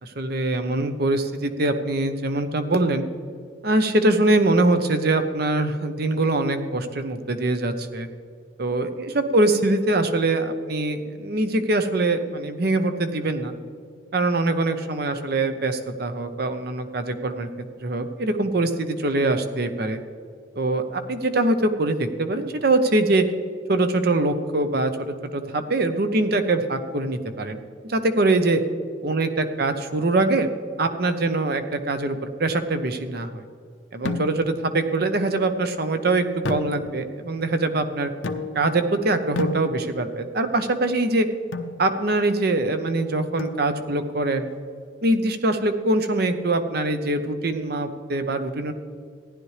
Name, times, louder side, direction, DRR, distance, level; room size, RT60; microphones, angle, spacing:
voice 1, 0.0-3.0 3.6-8.1 8.6-13.5 14.1-17.5 17.8-20.0 20.6-23.3 23.7-28.6 29.0-30.5 30.8-33.4 33.9-38.1 38.5-41.3 41.8-44.5 45.0-48.7, right 2 dB, 55° right, 8 dB, 0.8 m, -23 dB
sound 1, 34.1-34.7 36.4-37.2 38.2-38.8 39.4-40.2 41.5-41.8 43.4-44.0, left 2 dB, 75° left, 0.7 m, -31 dB
15.0 x 11.0 x 3.3 m, 2.2 s
head